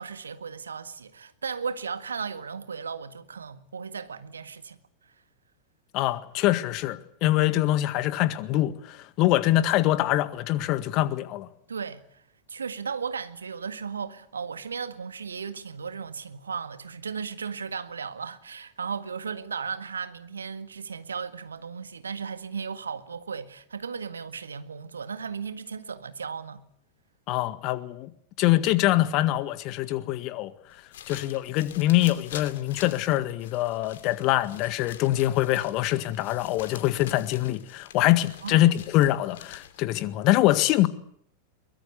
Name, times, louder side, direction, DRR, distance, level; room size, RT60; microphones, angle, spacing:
voice 1, 0.0-4.8 11.7-12.2 12.5-26.7 38.4-38.7, right 6 dB, 70° right, 1.8 m, -35 dB
voice 2, 5.9-11.5 27.3-28.1 28.4-30.5 31.1-40.9, left 15 dB, 40° left, 1.7 m, -24 dB
sound 1, 30.7-39.9, left 10 dB, 60° left, 2.6 m, -46 dB
23.0 x 21.5 x 8.4 m
figure-of-eight pair, 90°, 0 cm